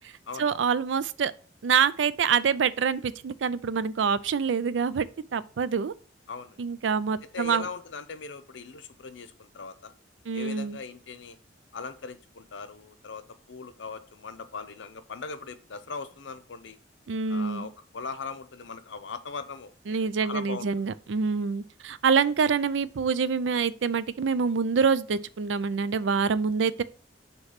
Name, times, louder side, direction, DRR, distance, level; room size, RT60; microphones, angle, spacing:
voice 1, 0.4-1.3 1.6-5.1 5.3-5.9 6.6-7.7 10.3-10.8 17.1-17.7 19.9-26.8, right 6 dB, 85° right, 0.4 m, -26 dB
voice 2, 6.3-6.6 7.3-9.9 10.3-11.4 11.7-13.2 13.5-16.8 17.3-20.9, left 4 dB, 85° left, 0.7 m, -40 dB
6.4 x 3.0 x 5.8 m
head